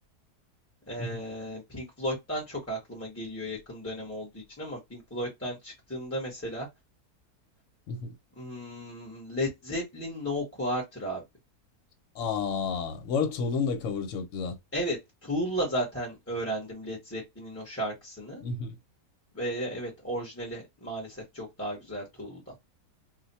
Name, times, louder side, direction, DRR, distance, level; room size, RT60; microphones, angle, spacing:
voice 1, 0.9-6.7 8.4-11.2 14.7-18.4 19.3-22.5, equal, 10° left, 0.8 m, -34 dB
voice 2, 12.1-14.6 18.4-18.7, left 5 dB, 60° left, 1.0 m, -31 dB
2.6 x 2.2 x 4.0 m
omnidirectional pair, 1.6 m